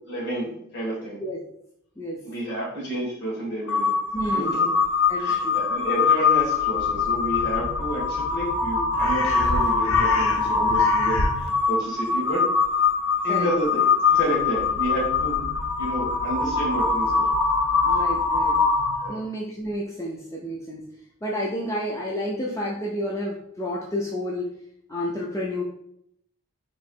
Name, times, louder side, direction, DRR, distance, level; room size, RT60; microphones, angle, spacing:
voice 1, 0.1-1.2 2.2-3.9 4.3-4.7 5.2-12.5 13.2-15.4 15.8-17.3 19.0-19.2, right 1 dB, 50° left, -3 dB, 1.4 m, -30 dB
Crow, 3.7-19.2, left 4 dB, 65° left, 0.6 m, -23 dB
voice 2, 4.1-4.6 5.1-5.6 13.3-13.5 17.9-18.6 19.1-20.8 21.2-24.5 24.9-25.6, equal, 15° left, -3 dB, 0.4 m, -30 dB
3.1 x 2.8 x 4.3 m, 0.74 s
head